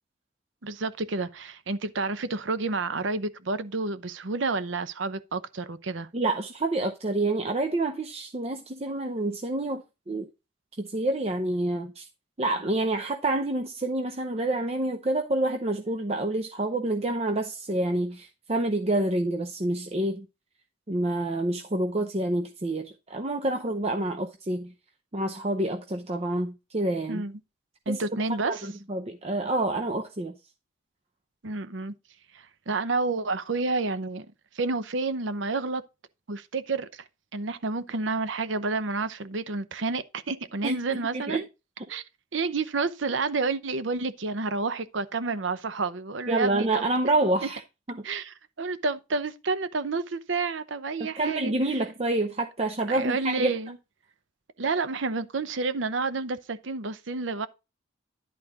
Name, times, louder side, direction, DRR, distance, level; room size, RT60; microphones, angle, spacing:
voice 1, 0.6-6.1 27.1-27.4 27.9-28.7 31.4-31.9 32.3-34.3 34.5-35.8 36.3-37.0 37.3-41.5 41.9-42.0 42.3-46.8 48.0-51.5 52.9-53.8 54.6-57.5, right 3 dB, 70° right, 0.7 m, -30 dB
voice 2, 6.1-10.3 10.8-12.1 12.4-20.3 20.9-24.7 25.1-27.2 27.9-28.0 28.4-30.4 40.6-41.4 46.3-47.6 47.9-48.0 51.0-53.5, right 2 dB, 30° right, 0.6 m, -28 dB
11.0 x 4.2 x 4.7 m
head